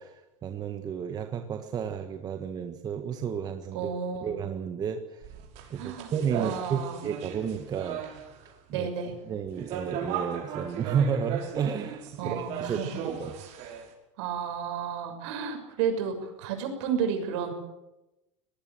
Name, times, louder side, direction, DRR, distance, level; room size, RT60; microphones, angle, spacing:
voice 1, 0.0-3.9 4.2-5.3 5.7-8.0 8.7-8.9 9.3-13.3, right 7 dB, 25° right, 6 dB, 1.5 m, -32 dB
voice 2, 3.7-4.3 5.8-7.0 8.7-9.1 12.2-13.0 14.2-17.5, right 7 dB, 60° right, 5 dB, 6.6 m, -32 dB
sound 1, 5.2-8.5 9.5-13.9, right 8 dB, 45° right, 5.5 m, -37 dB
24.0 x 19.5 x 7.6 m, 0.96 s
supercardioid pair, 145°, 17 cm